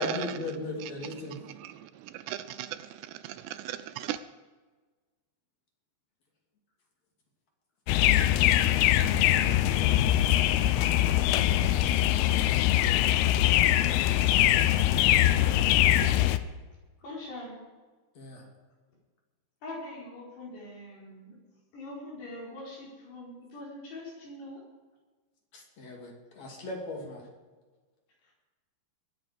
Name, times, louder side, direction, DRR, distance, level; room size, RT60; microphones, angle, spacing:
voice 1, 0.0-1.4 18.1-18.5 25.5-27.3, left 2 dB, 45° left, 3.3 m, -37 dB
voice 2, 1.3-4.2, right 13 dB, 80° right, 2.7 m, -38 dB
sound 1, 7.9-16.4, left 13 dB, 85° left, 2.3 m, -23 dB
voice 3, 17.0-17.6 19.6-21.3 21.7-24.6 28.2-28.3, left 1 dB, 65° left, 6.7 m, -42 dB
21.5 x 9.4 x 5.2 m
omnidirectional pair, 5.2 m